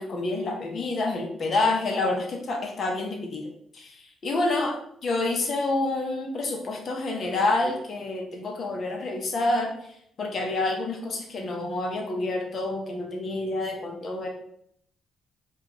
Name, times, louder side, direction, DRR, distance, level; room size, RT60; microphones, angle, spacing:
voice 1, 0.0-4.8 5.0-9.7 10.2-14.3, left 2 dB, 50° left, 2 dB, 0.8 m, -28 dB
4.4 x 2.4 x 2.9 m, 0.69 s
cardioid pair, 90°, 0 cm